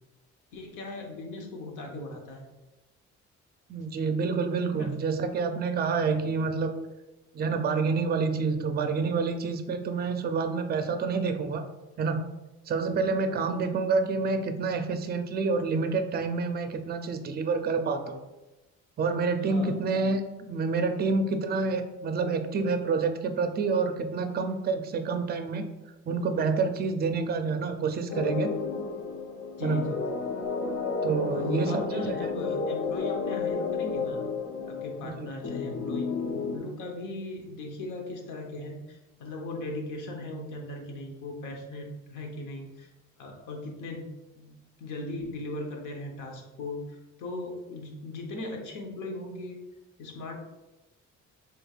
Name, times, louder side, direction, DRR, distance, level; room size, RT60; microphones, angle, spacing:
voice 1, 0.5-2.4 4.7-4.9 19.5-19.8 29.6-30.0 31.3-34.2 34.7-36.1 36.5-42.9 43.2-44.1 44.4-49.6 50.0-50.4, left 2 dB, 85° left, 1 dB, 0.9 m, -38 dB
voice 2, 3.7-6.7 7.3-11.6 12.0-12.2 12.7-18.2 19.0-25.6 26.1-28.5 29.6-29.9 31.0-32.3 35.0-35.3, right 4 dB, 35° right, 7 dB, 0.4 m, -28 dB
sound 1, 28.1-36.6, left 5 dB, 65° left, 0.5 m, -32 dB
4.4 x 3.3 x 2.3 m, 1.0 s
cardioid pair, 90°, 30 cm